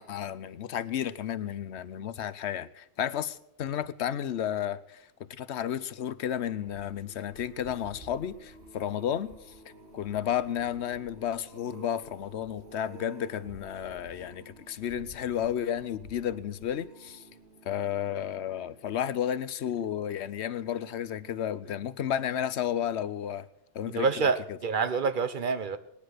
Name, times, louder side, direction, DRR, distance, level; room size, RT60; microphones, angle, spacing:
voice 1, 0.0-9.5 9.9-17.3 17.6-23.5 23.7-24.3, left 9 dB, 75° left, 1.0 m, -32 dB
sound 1, 6.2-19.6 20.1-20.4 20.7-20.8, right 3 dB, 80° right, 2.5 m, -52 dB
voice 2, 23.9-25.8, right 5 dB, 50° right, 1.0 m, -27 dB
19.0 x 10.0 x 6.4 m
omnidirectional pair, 1.1 m